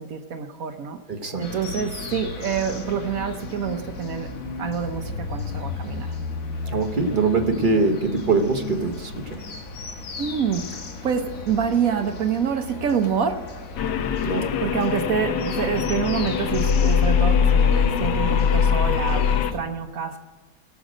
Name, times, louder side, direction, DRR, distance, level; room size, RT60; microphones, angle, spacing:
voice 1, 0.0-1.0 1.4-4.3 4.6-6.1 10.2-10.6 11.0-13.4 14.6-20.2, right 7 dB, 65° right, 7 dB, 1.2 m, -26 dB
voice 2, 1.1-1.4 6.7-9.4 14.3-14.5, right 3 dB, 35° right, 6 dB, 0.9 m, -23 dB
sound 1, 1.4-19.6, left 3 dB, 60° left, 1.5 m, -35 dB
sound 2, 13.8-19.5, left 7 dB, 85° left, 1.3 m, -21 dB
18.5 x 6.4 x 5.0 m, 1.3 s
omnidirectional pair, 1.7 m